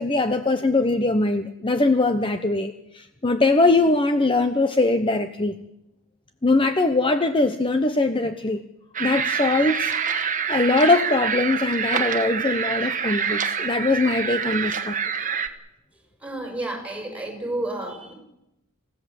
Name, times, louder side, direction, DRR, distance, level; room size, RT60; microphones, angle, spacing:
voice 1, 0.0-5.6 6.4-8.6 9.0-15.0, left 2 dB, 25° left, 9 dB, 0.9 m, -22 dB
sound 1, 8.9-15.5, right 6 dB, 40° right, 1.5 m, -26 dB
voice 2, 16.2-18.1, right 1 dB, 5° right, 2 dB, 5.6 m, -31 dB
28.0 x 16.5 x 7.7 m, 0.89 s
head